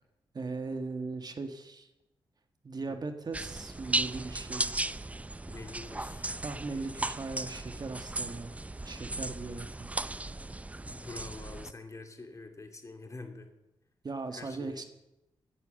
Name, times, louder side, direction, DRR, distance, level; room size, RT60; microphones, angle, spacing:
voice 1, 0.3-1.9 2.6-4.8 6.4-8.5 8.8-9.9 14.0-14.8, right 3 dB, 45° right, 7 dB, 1.6 m, -38 dB
sound 1, 3.3-11.7, right 2 dB, 15° right, 0.5 m, -36 dB
voice 2, 5.5-6.3 10.9-13.5 14.3-14.8, left 3 dB, 35° left, 5 dB, 2.6 m, -46 dB
15.5 x 9.1 x 7.7 m, 0.91 s
cardioid pair, 70°, 10 cm